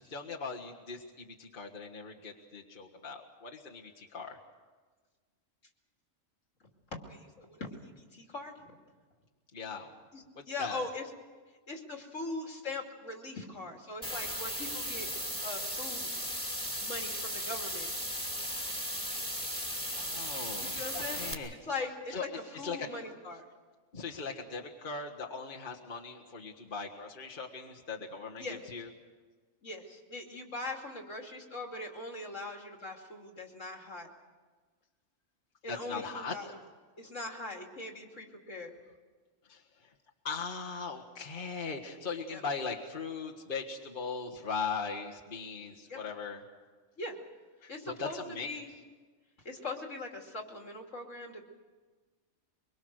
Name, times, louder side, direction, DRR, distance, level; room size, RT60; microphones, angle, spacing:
voice 1, 0.0-4.4 9.5-9.9 10.3-10.9 19.5-21.5 22.1-22.9 23.9-28.9 35.7-36.5 39.5-39.6 40.2-46.4 47.6-48.5, left 5 dB, 40° left, -1 dB, 1.8 m, -39 dB
voice 2, 7.1-8.5 10.1-11.1 11.7-16.1 16.8-17.9 20.6-21.2 21.6-22.3 22.6-23.4 28.4-28.6 29.6-34.1 35.6-36.5 37.0-38.7 42.3-42.4 45.9-46.0 47.0-47.2 47.7-48.7 49.4-51.4, left 2 dB, 70° left, 2 dB, 3.1 m, -41 dB
sound 1, 14.0-21.3, equal, 5° left, 2.7 m, -36 dB
23.5 x 23.5 x 6.5 m, 1.4 s
omnidirectional pair, 1.4 m